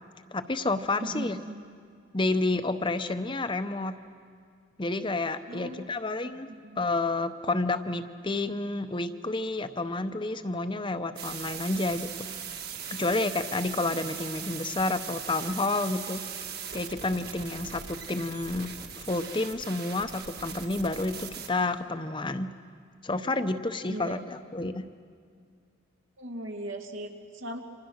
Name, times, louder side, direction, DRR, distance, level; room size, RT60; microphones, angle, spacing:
voice 1, 0.3-1.4 2.1-3.9 4.8-6.5 6.8-12.3 12.9-16.2 16.7-22.5 23.0-24.9, left 2 dB, 25° left, 9 dB, 0.8 m, -30 dB
voice 2, 1.0-1.6 5.5-5.9 6.6-6.8 23.9-24.2 26.2-27.6, right 1 dB, 75° right, 3 dB, 2.5 m, -38 dB
sound 1, 11.2-21.5, right 7 dB, 50° right, 2.2 m, -40 dB
29.5 x 25.5 x 6.4 m, 2.2 s
head